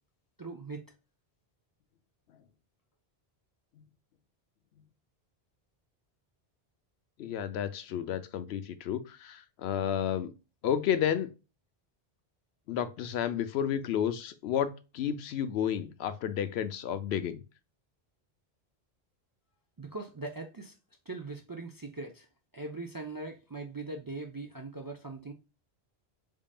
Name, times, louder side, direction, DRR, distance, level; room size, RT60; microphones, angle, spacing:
voice 1, 0.4-0.9 19.8-20.7 21.1-22.3 22.5-25.3, right 3 dB, 30° right, 0.4 m, -40 dB
voice 2, 7.2-10.3 10.6-11.3 12.7-17.4, left 9 dB, 85° left, 0.8 m, -31 dB
3.7 x 3.7 x 2.2 m
omnidirectional pair, 1.1 m